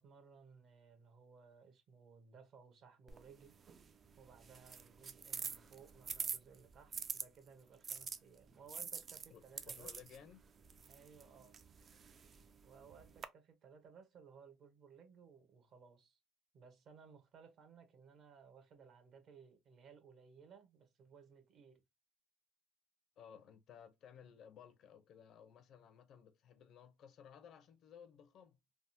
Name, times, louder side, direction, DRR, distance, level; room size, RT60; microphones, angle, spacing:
voice 1, 0.0-3.5 4.2-9.9 10.9-11.6 12.6-16.2 16.5-21.8, right 6 dB, 50° right, 0.9 m, -60 dB
sound 1, 3.1-7.3 7.8-13.3, right 6 dB, 35° right, 0.3 m, -47 dB
voice 2, 9.3-10.4 23.2-28.6, left 8 dB, 55° left, 0.5 m, -58 dB
3.3 x 2.0 x 2.7 m
cardioid pair, 130°, 0 cm